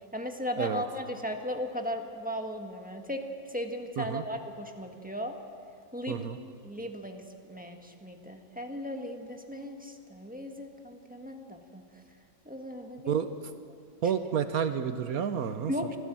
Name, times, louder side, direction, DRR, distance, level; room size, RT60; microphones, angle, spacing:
voice 1, 0.1-5.4 5.9-6.3 6.6-7.2 7.5-11.8 12.4-13.3 13.7-13.8 15.7-16.0, equal, 5° right, 3 dB, 1.4 m, -37 dB
voice 2, 6.1-6.4 13.1-13.3 14.0-15.7, right 7 dB, 60° right, 10 dB, 1.2 m, -30 dB
24.5 x 15.5 x 7.6 m, 2.4 s
omnidirectional pair, 1.9 m